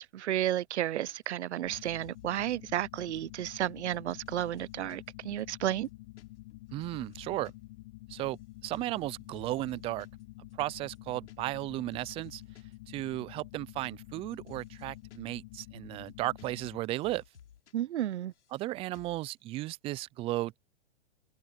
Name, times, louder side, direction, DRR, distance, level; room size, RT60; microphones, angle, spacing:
voice 1, 0.0-5.9 17.7-18.3, right 12 dB, 80° right, 0.7 m, -32 dB
sound 1, 1.1-1.4 1.7-2.5 3.0-5.1 5.4-5.5 5.7-6.2 6.5-7.5 7.8-8.4 8.7-9.0 9.4-10.2 10.5-10.6 10.8-11.7 11.9-12.7 13.2-15.3 15.6-15.7 15.9-16.8 17.0-17.7 18.0-18.6 18.9-19.3, left 9 dB, 80° left, 5.9 m, -57 dB
sound 2, 1.6-16.8, left 20 dB, 45° left, 1.3 m, -49 dB
voice 2, 6.7-7.5 8.1-8.4 8.6-10.1 10.6-12.4 12.9-17.2 18.5-20.6, right 17 dB, 15° right, 0.4 m, -35 dB
open air
hypercardioid pair, 130°, 34 cm